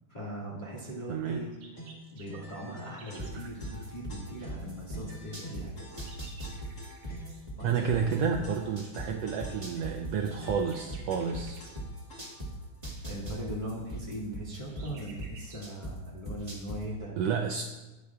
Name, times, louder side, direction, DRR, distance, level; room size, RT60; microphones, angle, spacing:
voice 1, 0.1-1.5 2.1-5.9 7.6-8.0 13.0-17.1, right 1 dB, 20° left, -5 dB, 1.4 m, -40 dB
voice 2, 1.1-1.4 3.2-3.5 7.6-11.7 17.2-17.6, right 6 dB, 90° right, 3 dB, 1.4 m, -30 dB
sound 1, 1.3-3.4 5.4-7.4 10.1-11.8 14.1-15.7, right 3 dB, 60° right, 2.3 m, -54 dB
sound 2, 1.8-12.6, left 1 dB, 35° left, 1.8 m, -48 dB
sound 3, 3.2-5.6 6.0-9.1 9.4-12.5 12.8-15.9 16.3-16.8, right 1 dB, 20° right, 1.1 m, -38 dB
15.0 x 9.6 x 2.4 m, 1.1 s
omnidirectional pair, 3.6 m